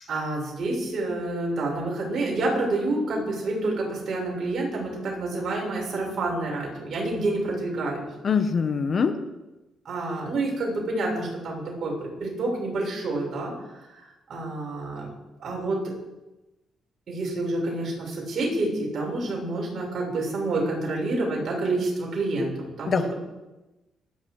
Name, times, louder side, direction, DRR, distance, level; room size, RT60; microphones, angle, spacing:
voice 1, 0.1-8.1 9.8-13.5 13.9-15.1 15.4-15.9 17.1-23.1, right 2 dB, 55° right, -2 dB, 7.6 m, -28 dB
voice 2, 8.2-9.1 22.9-23.1, left 6 dB, 45° left, 9 dB, 1.3 m, -23 dB
26.5 x 10.5 x 5.0 m, 1.0 s
cardioid pair, 90°, 0 cm